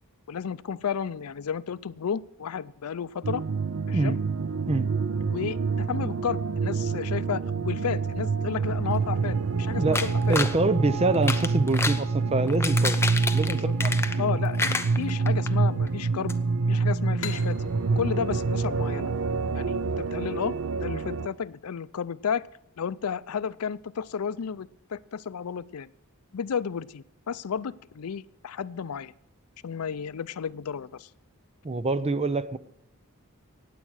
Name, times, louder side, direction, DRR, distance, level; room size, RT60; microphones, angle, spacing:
voice 1, 0.3-3.4 3.9-4.2 5.3-10.4 13.5-13.7 14.2-16.4 16.7-17.6 18.0-19.1 19.5-20.6 20.8-22.4 22.8-25.9 26.3-29.1 29.6-31.1, left 7 dB, 80° left, 18 dB, 0.5 m, -32 dB
sound 1, 3.2-21.3, right 4 dB, 70° right, 0.6 m, -27 dB
sound 2, 9.9-10.6 11.1-12.0 12.5-14.3 14.6-15.5 15.9-16.0 16.3-16.4, left 3 dB, 10° left, 0.7 m, -29 dB
voice 2, 10.3-13.0 13.3-14.3 31.6-32.6, right 2 dB, 30° right, 13 dB, 0.6 m, -26 dB
sound 3, 17.2-20.6, left 7 dB, 60° left, 1.4 m, -43 dB
16.0 x 9.4 x 6.4 m, 0.76 s
head